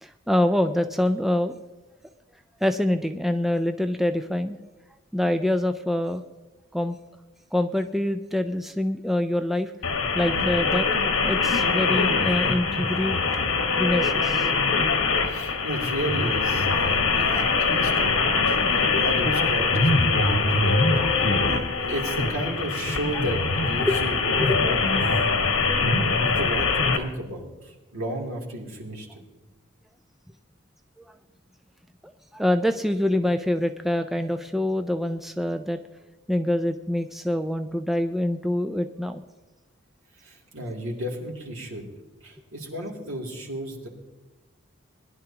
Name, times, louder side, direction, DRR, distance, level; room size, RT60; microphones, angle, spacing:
voice 1, 0.0-1.6 2.6-4.6 5.1-6.2 6.7-7.0 7.5-9.7 10.1-10.9 11.2-13.2 13.8-14.5 21.1-21.3 23.8-23.9 24.3-24.7 31.0-31.1 32.0-35.8 36.3-39.2, left 1 dB, ahead, 7 dB, 0.3 m, -25 dB
sound 1, 9.8-27.0, left 4 dB, 85° left, 1.4 m, -23 dB
voice 2, 15.2-20.7 21.8-25.2 26.0-29.2 40.2-41.8 42.2-43.9, right 1 dB, 75° right, -1 dB, 3.0 m, -33 dB
21.0 x 11.5 x 2.9 m, 1.2 s
head